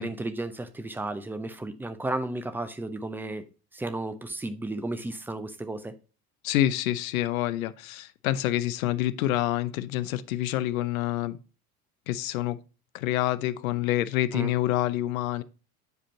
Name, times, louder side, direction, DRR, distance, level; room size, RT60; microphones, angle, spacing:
voice 1, 0.0-3.5 3.7-5.9 14.3-14.5, right 2 dB, 5° right, 0.3 m, -33 dB
voice 2, 6.4-11.4 12.1-12.6 12.9-15.4, left 14 dB, 65° left, 0.6 m, -27 dB
9.1 x 4.9 x 2.8 m
figure-of-eight pair, 65°, 45 cm